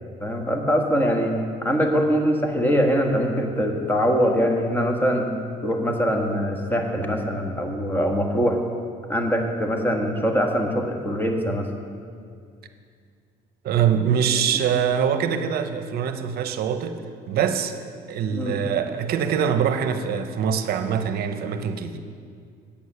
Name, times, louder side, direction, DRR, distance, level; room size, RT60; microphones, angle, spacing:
voice 1, 0.2-5.3 5.6-8.6 9.1-11.7 18.3-18.6, equal, 10° left, 2 dB, 1.4 m, -23 dB
voice 2, 13.6-17.0 17.3-17.8 18.1-22.0, right 8 dB, 65° right, 9 dB, 0.7 m, -23 dB
8.6 x 8.2 x 6.8 m, 2.2 s
cardioid pair, 110°, 17 cm